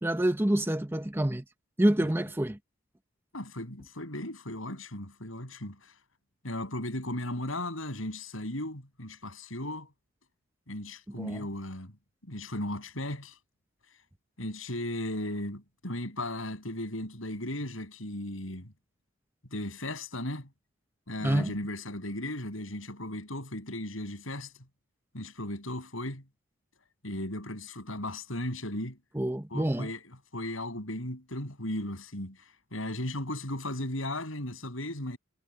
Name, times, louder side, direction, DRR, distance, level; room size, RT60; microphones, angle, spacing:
voice 1, 0.0-1.4 1.8-2.6 11.2-11.4 21.2-21.5 29.1-29.9, right 1 dB, 10° right, 0.8 m, -27 dB
voice 2, 3.3-5.9 6.4-9.9 10.7-11.9 12.2-13.4 14.4-18.7 19.5-20.5 21.1-24.5 25.1-26.2 27.0-29.0 29.5-32.4 32.7-35.2, left 1 dB, 85° left, 7.3 m, -36 dB
head